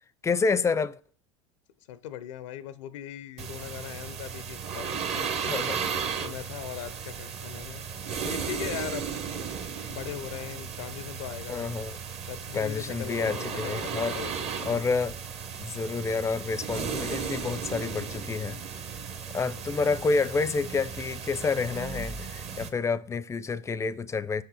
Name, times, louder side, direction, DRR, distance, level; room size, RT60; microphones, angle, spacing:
voice 1, 0.2-1.0 5.5-5.8 11.5-12.0 12.5-14.1 14.6-15.2 15.6-18.6 19.3-24.4, left 4 dB, 20° left, 0.4 m, -29 dB
voice 2, 1.9-5.6 6.2-7.9 8.2-9.1 9.5-9.6 9.9-11.7 12.3-14.7 19.3-19.4 19.7-19.8, left 11 dB, 75° left, 0.5 m, -39 dB
sound 1, 3.4-22.7, right 6 dB, 40° right, 0.9 m, -35 dB
6.2 x 4.9 x 4.0 m
hypercardioid pair, 80°, 16 cm